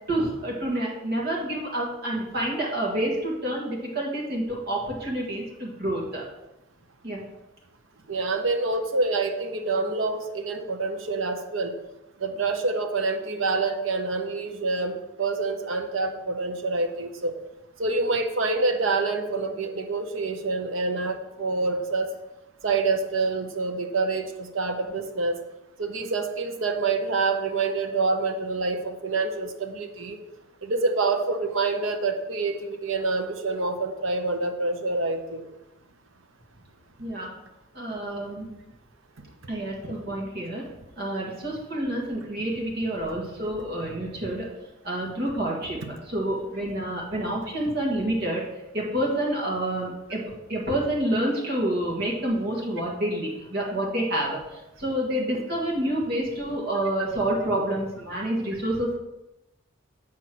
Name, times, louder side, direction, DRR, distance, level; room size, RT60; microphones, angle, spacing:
voice 1, 0.0-6.2 7.0-7.2 37.0-37.3 37.7-38.5 39.5-40.6 41.0-44.5 44.8-45.8 46.1-50.2 50.5-59.0, right 1 dB, 50° right, -3 dB, 1.8 m, -28 dB
voice 2, 8.1-11.7 12.2-17.3 17.8-22.1 22.6-25.4 25.8-30.2 30.6-35.5, right 3 dB, 75° right, 5 dB, 0.9 m, -27 dB
7.6 x 4.4 x 6.0 m, 0.95 s
head